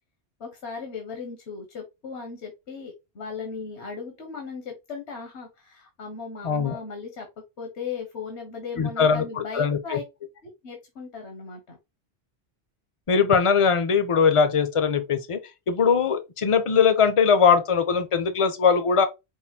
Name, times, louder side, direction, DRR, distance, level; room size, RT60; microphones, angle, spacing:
voice 1, 0.4-7.3 7.6-10.0 10.6-11.8, left 5 dB, 85° left, 1.4 m, -37 dB
voice 2, 6.4-6.8 8.8-10.0 13.1-15.4 15.7-19.1, left 6 dB, 35° left, 0.6 m, -21 dB
5.5 x 2.6 x 2.8 m
omnidirectional pair, 1.1 m